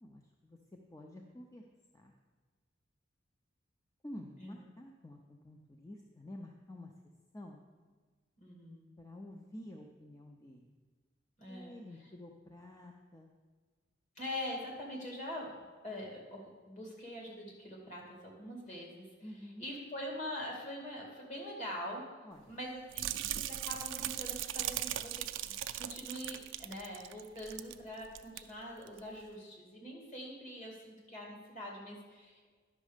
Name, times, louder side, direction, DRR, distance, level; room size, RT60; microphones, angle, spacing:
voice 1, 0.0-1.6 1.9-2.1 4.0-6.9 7.3-7.6 9.0-10.7 11.5-13.3 19.2-19.7 22.2-22.6, left 1 dB, 15° left, 2 dB, 0.5 m, -50 dB
voice 2, 8.4-8.9 11.4-11.8 14.2-15.6 15.8-19.1 19.6-22.0 22.5-25.5 25.8-32.5, left 1 dB, 40° left, -2 dB, 2.4 m, -44 dB
Pouring Soup in a Metal Pan - Long Slow Nasty, 22.9-27.8 28.0-28.4 28.9-29.0, right 12 dB, 65° right, 0.4 m, -38 dB
10.5 x 6.3 x 5.0 m, 1.5 s
head